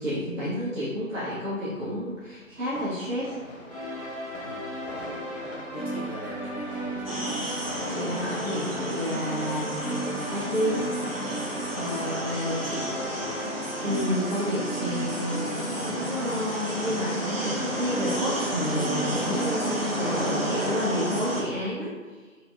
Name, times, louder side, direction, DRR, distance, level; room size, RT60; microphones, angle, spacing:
voice 1, 0.0-3.3 7.5-10.9 11.7-12.9 13.8-22.3, equal, 65° right, -10 dB, 0.9 m, -30 dB
sound 1, 2.1-17.4, left 1 dB, 65° left, 0.6 m, -43 dB
sound 2, 3.7-19.8, right 1 dB, 30° left, 0.9 m, -35 dB
voice 2, 4.4-4.7 5.7-7.2 11.9-12.8 19.9-20.2, equal, 80° right, -6 dB, 1.3 m, -42 dB
sound 3, 7.0-21.4, equal, 45° right, 0.5 m, -32 dB
3.3 x 2.1 x 2.4 m, 1.4 s
figure-of-eight pair, 165°, 43 cm